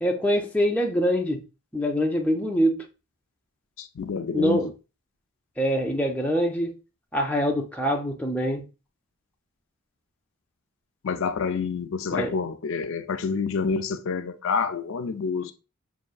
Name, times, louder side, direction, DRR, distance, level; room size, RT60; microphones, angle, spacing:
voice 1, 0.0-1.4 1.7-2.8 4.3-4.7 5.6-6.7 7.1-8.6 12.2-12.3, equal, 5° left, 0.5 m, -24 dB
voice 2, 3.8-4.7 11.0-15.5, left 5 dB, 65° left, 0.4 m, -28 dB
6.3 x 2.7 x 2.3 m
head